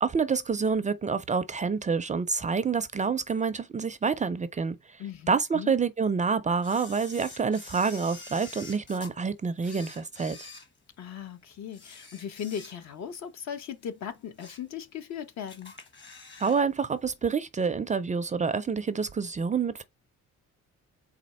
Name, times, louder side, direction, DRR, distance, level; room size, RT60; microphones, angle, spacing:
voice 1, 0.0-5.0 5.3-10.5 16.4-19.8, right 5 dB, 25° right, 0.4 m, -27 dB
voice 2, 5.0-5.7 11.0-15.7, left 8 dB, 65° left, 0.8 m, -38 dB
Camera, 6.6-9.1 9.6-11.2 11.7-13.1 13.4-13.6 14.1-14.7 15.1-15.2 15.5-16.6 16.9-17.0, left 3 dB, 40° left, 1.3 m, -47 dB
4.2 x 2.4 x 4.2 m
cardioid pair, 90°, 30 cm